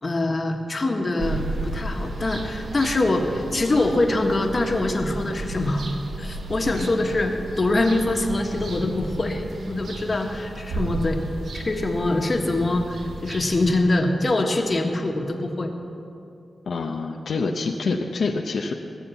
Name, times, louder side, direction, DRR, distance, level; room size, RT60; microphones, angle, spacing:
voice 1, 0.0-11.2 11.5-15.7, left 2 dB, 35° left, 3 dB, 1.4 m, -24 dB
sound 1, 1.2-13.8, right 2 dB, 70° right, 1.3 m, -34 dB
voice 2, 16.7-18.7, left 4 dB, 75° left, 2 dB, 0.7 m, -26 dB
17.0 x 7.3 x 7.1 m, 2.7 s
wide cardioid pair, 90°, 0 cm